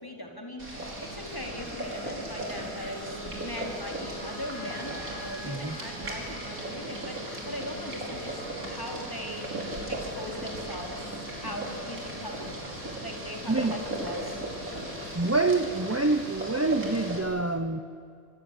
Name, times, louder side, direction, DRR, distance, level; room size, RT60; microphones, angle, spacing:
voice 1, 0.0-7.2 7.5-9.5 9.9-12.5 13.0-14.4, left 1 dB, 15° left, 1 dB, 4.0 m, -40 dB
Boiling, 0.6-17.2, right 1 dB, 80° right, 5.9 m, -37 dB
Wind instrument woodwind instrument, 2.5-8.7, left 2 dB, 75° left, 3.7 m, -47 dB
voice 2, 5.4-5.8 13.5-13.8 15.1-17.8, right 3 dB, 15° right, 9 dB, 0.6 m, -26 dB
26.0 x 25.5 x 8.4 m, 2.4 s
omnidirectional pair, 1.5 m